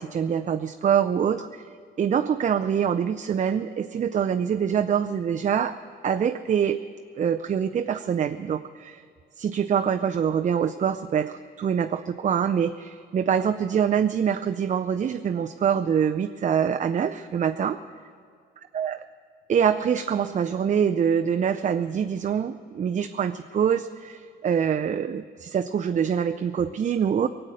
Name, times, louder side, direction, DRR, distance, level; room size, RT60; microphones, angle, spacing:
voice 1, 0.0-1.6 2.0-5.7 6.0-6.8 7.2-9.0 9.4-17.8 18.7-19.0 19.5-27.3, right 8 dB, 40° right, 8 dB, 0.5 m, -25 dB
19.5 x 7.8 x 9.1 m, 2.1 s
cardioid pair, 90°, 20 cm